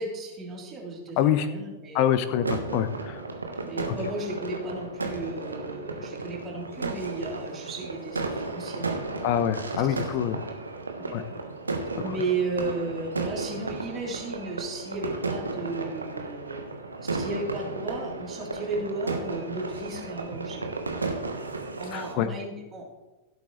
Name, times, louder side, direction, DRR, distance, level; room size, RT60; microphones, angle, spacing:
voice 1, 0.0-2.5 3.6-9.3 9.9-10.2 11.0-11.4 12.0-16.7 17.0-20.7 21.8-22.9, right 3 dB, 25° right, -2 dB, 3.4 m, -35 dB
voice 2, 1.2-1.5 1.9-3.2 9.2-10.5 11.1-11.2 21.9-22.3, left 10 dB, 45° left, 11 dB, 0.8 m, -25 dB
sound 1, 2.4-22.1, right 3 dB, 80° right, 1.2 m, -34 dB
16.5 x 8.2 x 3.2 m, 1.1 s
figure-of-eight pair, 90°, 0 cm